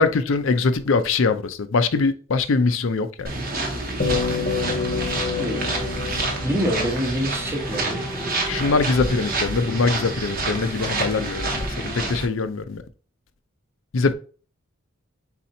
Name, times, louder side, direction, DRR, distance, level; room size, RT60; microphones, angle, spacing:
voice 1, 0.0-3.3 8.5-12.8 13.9-14.1, left 4 dB, 65° left, 0.5 m, -22 dB
sound 1, 3.2-12.3, right 2 dB, 45° right, 0.9 m, -28 dB
sound 2, 4.0-8.6, left 5 dB, 35° left, 0.9 m, -29 dB
sound 3, 5.0-12.2, right 1 dB, 5° left, 0.5 m, -38 dB
voice 2, 5.4-5.7 6.4-8.0, equal, 10° right, 0.9 m, -26 dB
4.2 x 4.1 x 2.7 m
head